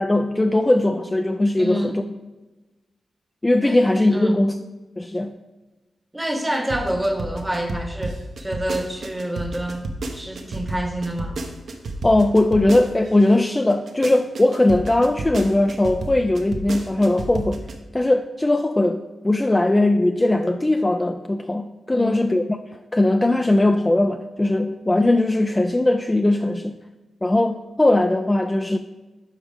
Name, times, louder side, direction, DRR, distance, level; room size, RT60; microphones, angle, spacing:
voice 1, 0.0-2.0 3.4-4.6 5.0-5.3 12.0-17.7 17.9-22.4 22.9-26.8 27.2-28.8, left 1 dB, 15° left, 0.3 m, -19 dB
voice 2, 1.6-2.0 3.6-3.8 4.1-4.5 6.1-9.9 10.1-11.4 21.9-22.4, right 1 dB, 10° right, 1.0 m, -27 dB
sound 1, 6.5-13.2 13.7-17.7, right 2 dB, 65° right, 0.9 m, -31 dB
12.0 x 4.7 x 3.4 m
wide cardioid pair, 105°, 0 cm